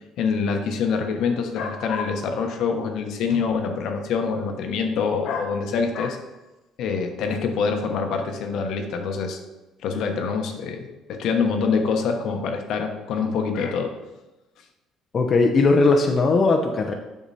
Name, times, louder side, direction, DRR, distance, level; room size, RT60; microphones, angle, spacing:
voice 1, 0.2-6.2 6.8-9.4 9.8-13.9, left 5 dB, 70° left, 4 dB, 1.1 m, -25 dB
voice 2, 15.1-16.9, left 3 dB, 40° left, 3 dB, 0.7 m, -18 dB
7.3 x 5.9 x 4.2 m, 1.1 s
cardioid pair, 110°, 0 cm